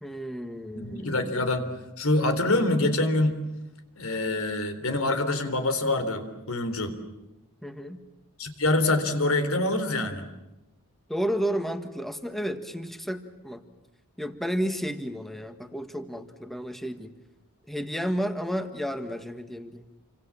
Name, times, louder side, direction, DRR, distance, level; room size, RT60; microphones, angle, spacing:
voice 1, 0.0-1.5 7.6-8.1 11.1-13.6 14.2-17.1 17.7-19.8, equal, ahead, 8 dB, 1.7 m, -32 dB
voice 2, 0.8-1.7 2.0-3.4 4.0-7.0 8.4-10.3, left 2 dB, 80° left, 9 dB, 3.8 m, -25 dB
29.0 x 25.5 x 7.4 m, 0.98 s
head